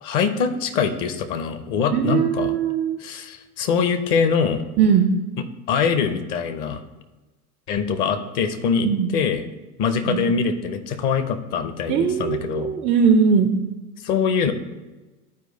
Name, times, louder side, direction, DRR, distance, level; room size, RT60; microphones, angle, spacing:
voice 1, 0.0-2.5 3.0-4.6 5.7-6.8 7.7-9.4 9.8-12.7 14.0-14.5, left 6 dB, 40° left, 10 dB, 0.8 m, -23 dB
voice 2, 1.9-3.0 4.8-5.1 8.8-9.1 10.0-10.2 11.9-13.5, right 6 dB, 20° right, 5 dB, 0.3 m, -19 dB
10.5 x 4.7 x 3.9 m, 1.2 s
figure-of-eight pair, 85°, 44 cm